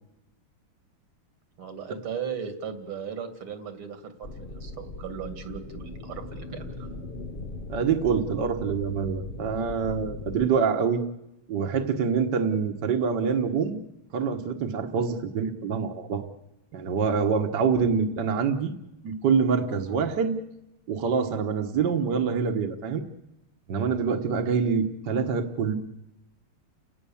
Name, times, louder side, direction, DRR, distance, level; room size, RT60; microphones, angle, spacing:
voice 1, 1.6-7.0, right 7 dB, 80° right, 8 dB, 3.2 m, -37 dB
sound 1, 4.2-10.5, left 2 dB, 35° left, 0.9 m, -39 dB
voice 2, 7.7-11.0 11.5-13.8 14.1-16.2 16.7-18.8 19.0-20.4 20.9-23.1 23.7-25.7, right 6 dB, 55° right, 4 dB, 1.8 m, -25 dB
30.0 x 18.0 x 7.1 m, 0.89 s
omnidirectional pair, 2.4 m